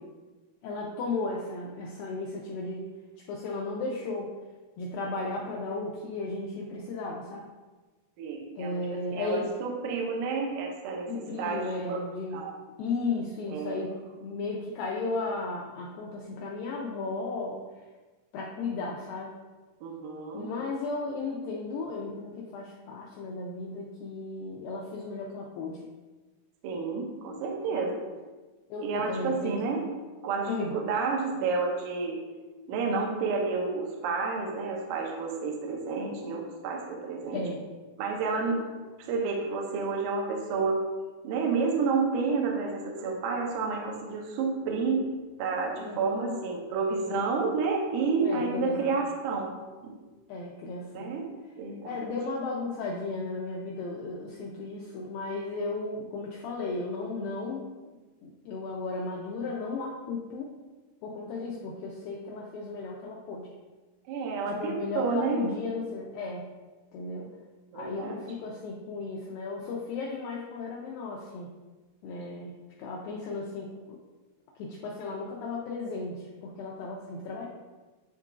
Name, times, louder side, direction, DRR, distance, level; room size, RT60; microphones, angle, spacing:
voice 1, 0.6-2.9 3.3-4.3 4.8-7.5 8.6-9.5 11.1-12.5 12.8-17.6 18.3-19.4 20.3-25.8 27.7-27.9 28.7-29.6 30.5-30.7 37.3-37.6 45.8-46.4 48.2-48.9 50.3-51.1 51.8-57.7 58.2-60.5 61.0-63.5 64.5-66.4 66.9-67.3 67.7-71.5 72.0-72.5 72.8-74.0 74.6-77.5, left 3 dB, 90° left, -3 dB, 2.0 m, -35 dB
voice 2, 8.2-12.0 12.3-12.5 13.5-13.8 19.8-20.5 26.6-27.9 28.8-29.8 30.2-32.2 32.7-37.4 38.0-38.6 39.0-40.9 41.2-45.1 45.4-49.5 49.8-49.9 50.9-51.3 51.6-52.1 64.1-65.4 67.7-68.2, right 4 dB, 90° right, 0 dB, 1.8 m, -30 dB
10.0 x 3.7 x 2.5 m, 1.3 s
omnidirectional pair, 4.9 m